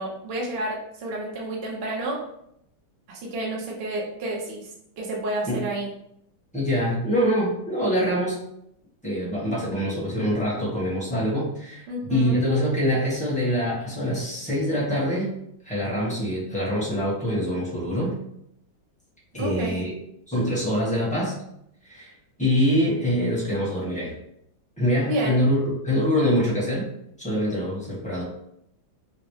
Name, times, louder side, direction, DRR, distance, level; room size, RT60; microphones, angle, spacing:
voice 1, 0.0-2.2 3.1-4.7 5.0-5.9 11.9-12.4 19.4-19.8 25.1-25.4, right 1 dB, 75° right, -2 dB, 0.5 m, -30 dB
voice 2, 6.5-8.4 9.0-11.8 12.1-15.3 15.6-18.1 19.3-19.9 20.3-21.3 21.8-22.1 22.4-24.1 24.8-26.9 27.2-28.2, equal, 5° left, -7 dB, 0.7 m, -24 dB
3.9 x 2.0 x 3.1 m, 0.75 s
omnidirectional pair, 2.3 m